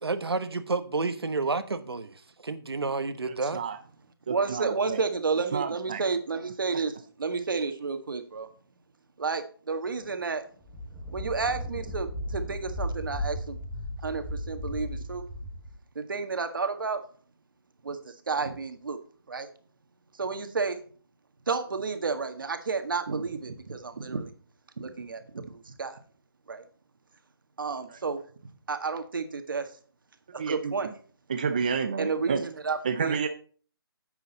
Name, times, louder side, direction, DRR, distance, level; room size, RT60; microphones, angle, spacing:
voice 1, 0.0-3.6, right 3 dB, 85° right, 9 dB, 1.3 m, -30 dB
voice 2, 3.3-3.8 4.3-5.0 5.5-6.0 27.9-28.0 30.4-30.9 31.3-32.4 32.8-33.3, right 6 dB, 20° right, 7 dB, 0.4 m, -30 dB
voice 3, 4.3-6.9 7.2-8.5 9.2-10.4 11.1-13.6 14.0-15.2 15.9-17.0 17.8-19.0 19.3-19.5 20.2-20.8 21.5-24.3 24.8-26.0 26.5-26.6 27.6-28.2 28.7-29.7 30.3-30.9 32.0-33.2, right 4 dB, 60° right, 7 dB, 1.7 m, -31 dB
sound 1, 10.0-10.1 10.6-15.8, equal, ahead, 1.2 m, -35 dB
9.8 x 8.1 x 4.0 m, 0.43 s
hypercardioid pair, 170°, 13 cm